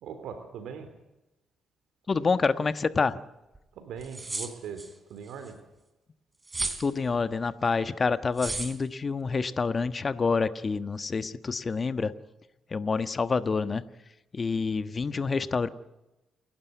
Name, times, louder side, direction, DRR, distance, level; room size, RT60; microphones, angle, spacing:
voice 1, 0.0-0.9 3.7-5.6 15.1-15.3, right 6 dB, 80° right, 7 dB, 3.3 m, -41 dB
voice 2, 2.1-3.2 6.8-12.1 12.7-13.8 14.3-15.7, left 4 dB, 35° left, 12 dB, 1.4 m, -27 dB
sound 1, 3.5-3.6 4.0-4.9 6.5-6.9 8.4-8.7, right 3 dB, 20° right, 3.8 m, -33 dB
29.0 x 12.0 x 9.4 m, 0.96 s
cardioid pair, 90°, 0 cm